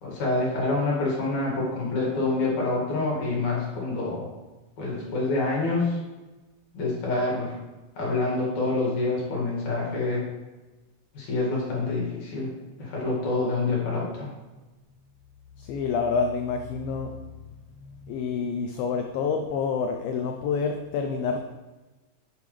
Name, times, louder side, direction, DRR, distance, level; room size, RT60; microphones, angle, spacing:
voice 1, 0.0-4.3 4.8-6.0 6.7-7.5 8.0-10.3 11.1-12.5 12.8-14.3, left 2 dB, 50° left, -4 dB, 2.9 m, -27 dB
voice 2, 15.6-17.1 17.8-21.4, left 5 dB, 90° left, 4 dB, 2.0 m, -28 dB
10.5 x 7.0 x 3.3 m, 1.2 s
omnidirectional pair, 4.9 m